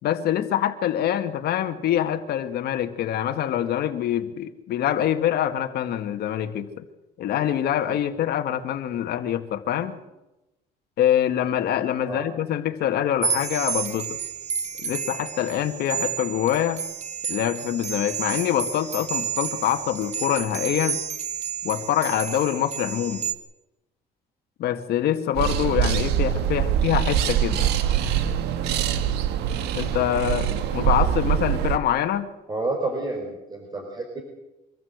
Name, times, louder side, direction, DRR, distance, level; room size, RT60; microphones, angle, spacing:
voice 1, 0.0-6.8 7.2-10.0 11.0-14.1 14.8-16.8 17.3-21.0 21.6-23.2 24.6-27.7 29.7-32.3, left 10 dB, 70° left, 7 dB, 2.0 m, -25 dB
sound 1, 13.2-23.3, right 7 dB, 40° right, 1.8 m, -31 dB
sound 2, 25.4-31.8, right 10 dB, 85° right, 1.6 m, -23 dB
voice 2, 32.5-34.2, right 2 dB, 25° right, 1 dB, 4.4 m, -30 dB
24.5 x 14.0 x 8.1 m, 0.97 s
cardioid pair, 110°, 17 cm